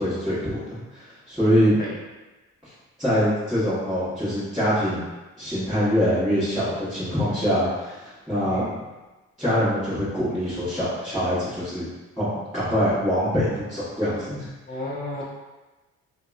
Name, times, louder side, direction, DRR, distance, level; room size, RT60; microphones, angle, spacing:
voice 1, 0.0-1.8 3.0-5.1 5.4-8.6 9.4-11.9 12.2-12.3 12.5-14.5, equal, ahead, -15 dB, 1.2 m, -24 dB
voice 2, 8.4-8.8 14.7-15.2, left 2 dB, 30° left, -4 dB, 0.9 m, -32 dB
2.9 x 2.8 x 2.4 m, 1.2 s
cardioid pair, 90°, 30 cm